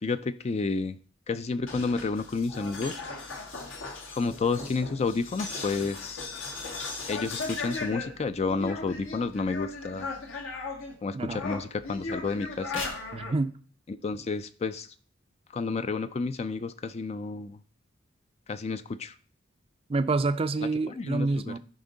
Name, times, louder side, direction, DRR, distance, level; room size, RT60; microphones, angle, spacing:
voice 1, 0.0-1.0 1.3-3.0 4.1-6.3 7.1-10.1 11.0-12.8 13.9-14.9 15.5-17.6 18.5-19.1 20.9-21.5, left 4 dB, 35° left, 0.4 m, -30 dB
sound 1, 1.6-10.9 11.2-13.4, left 3 dB, 75° left, 1.8 m, -37 dB
voice 2, 13.1-13.6 19.9-21.6, right 3 dB, 30° right, 0.4 m, -27 dB
13.0 x 5.2 x 3.9 m
head